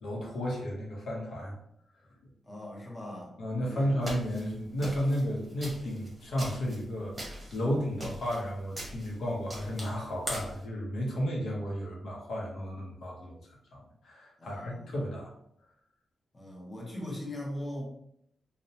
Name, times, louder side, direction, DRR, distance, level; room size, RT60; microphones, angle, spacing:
voice 1, 0.0-1.5 3.4-13.3 13.7-15.3, equal, 70° left, -3 dB, 0.6 m, -33 dB
voice 2, 2.5-3.3 3.7-4.0 14.4-14.9 16.3-17.8, left 1 dB, 20° left, -3 dB, 0.7 m, -40 dB
sound 1, 4.0-10.6, equal, 20° right, 0.9 m, -42 dB
2.6 x 2.0 x 2.7 m, 0.74 s
wide cardioid pair, 120°, 0 cm